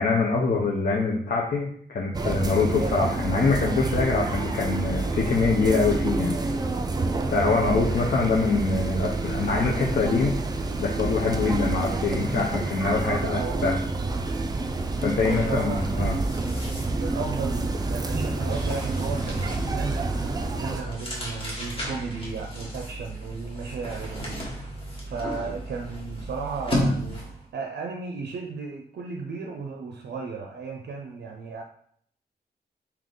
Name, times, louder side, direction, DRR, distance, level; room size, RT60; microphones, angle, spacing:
voice 1, 0.0-6.4 7.3-10.4 10.8-13.8 15.0-16.1, left 4 dB, 60° left, -2 dB, 0.6 m, -24 dB
sound 1, 2.1-20.8, right 3 dB, 25° right, 0.4 m, -28 dB
voice 2, 7.6-7.9 13.0-13.8 15.2-16.1 17.0-31.6, right 4 dB, 85° right, 2 dB, 0.5 m, -35 dB
sound 2, 14.2-27.5, equal, 35° left, 1.2 m, -34 dB
3.7 x 2.8 x 3.7 m, 0.63 s
wide cardioid pair, 115°, 17 cm